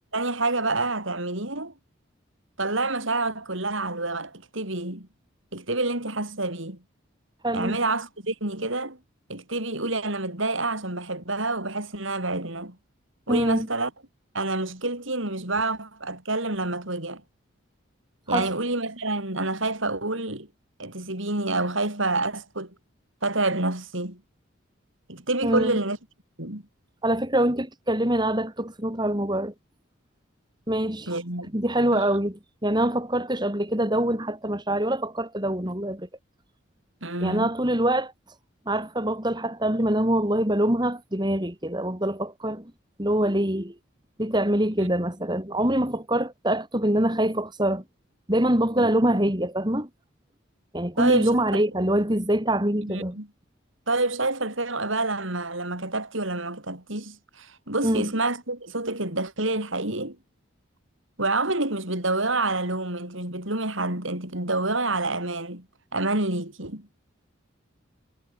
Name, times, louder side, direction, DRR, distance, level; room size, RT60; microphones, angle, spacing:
voice 1, 0.1-1.7 2.6-5.1 5.5-6.8 7.5-9.0 9.3-12.8 13.3-13.9 14.3-17.2 18.3-20.5 20.8-22.7 23.2-24.2 25.1-26.0 26.4-26.6 31.1-31.5 31.9-32.1 37.0-37.5 44.8-44.9 48.8-48.9 51.0-51.4 52.9-53.3 53.9-60.2 61.2-65.6 65.9-66.9, right 2 dB, 70° right, 6.6 m, -28 dB
voice 2, 7.4-7.8 13.3-13.7 18.3-18.5 25.4-25.8 27.0-29.5 30.7-31.1 31.5-36.1 37.2-38.1 38.7-42.7 43.0-43.7 44.2-47.8 48.3-49.9 50.7-53.2 57.8-58.1, right 1 dB, 20° right, 4.3 m, -24 dB
head